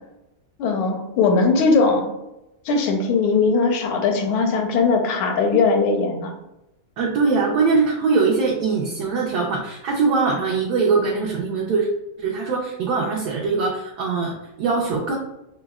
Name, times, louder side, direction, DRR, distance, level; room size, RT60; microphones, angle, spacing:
voice 1, 0.6-2.1 2.6-6.3, left 4 dB, 85° left, 3 dB, 1.4 m, -19 dB
voice 2, 7.0-11.9 12.2-15.2, right 4 dB, 75° right, -3 dB, 0.9 m, -22 dB
5.2 x 2.0 x 2.3 m, 0.91 s
omnidirectional pair, 2.2 m